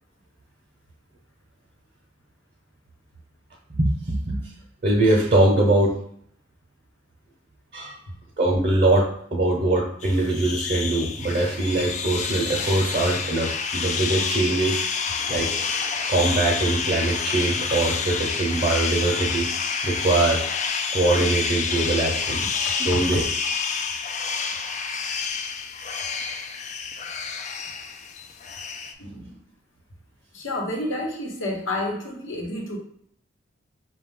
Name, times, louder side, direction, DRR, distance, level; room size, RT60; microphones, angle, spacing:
voice 1, 3.7-4.5 4.8-6.0 7.7-8.0 8.4-14.8 15.3-15.5 16.1-19.5 19.8-20.4 20.9-22.5 22.8-23.3, right 2 dB, 40° right, -2 dB, 0.7 m, -22 dB
sound 1, 10.0-28.9, left 5 dB, 35° left, 0.3 m, -28 dB
voice 2, 29.0-29.4 30.3-32.8, left 1 dB, 80° left, 0 dB, 1.0 m, -30 dB
5.2 x 2.3 x 3.6 m, 0.68 s
head